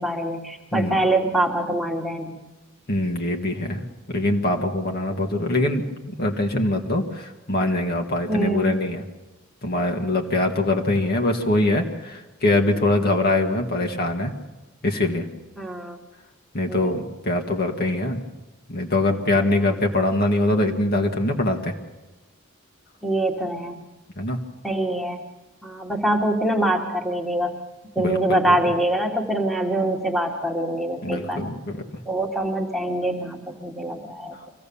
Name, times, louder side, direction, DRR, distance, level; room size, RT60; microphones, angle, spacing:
voice 1, 0.0-2.4 8.3-8.7 15.6-16.0 16.7-17.0 23.0-23.8 24.6-25.2 25.6-27.6 28.0-31.5 32.1-34.4, right 1 dB, ahead, 2 dB, 1.9 m, -24 dB
voice 2, 2.9-3.9 4.1-9.0 9.6-14.3 14.8-15.2 16.5-18.2 18.7-21.7 24.2-24.4 28.0-28.6 31.0-31.8, left 2 dB, 50° left, 2 dB, 1.8 m, -23 dB
24.0 x 16.0 x 7.1 m, 1.1 s
head